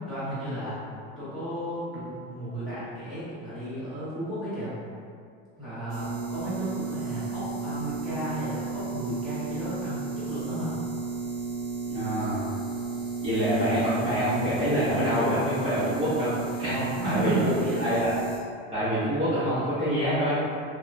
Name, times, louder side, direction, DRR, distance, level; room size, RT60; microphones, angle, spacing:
voice 1, 0.1-0.8 1.2-4.7 5.6-10.7 16.6-17.9, right 1 dB, ahead, -14 dB, 0.9 m, -33 dB
sound 1, 5.9-18.4, right 4 dB, 70° right, 0.7 m, -34 dB
voice 2, 11.9-12.4 13.2-16.3 16.6-16.7 17.0-17.3 17.8-18.1 18.7-20.4, equal, 25° right, -14 dB, 0.6 m, -26 dB
2.9 x 2.1 x 2.4 m, 2.3 s
cardioid pair, 175°, 29 cm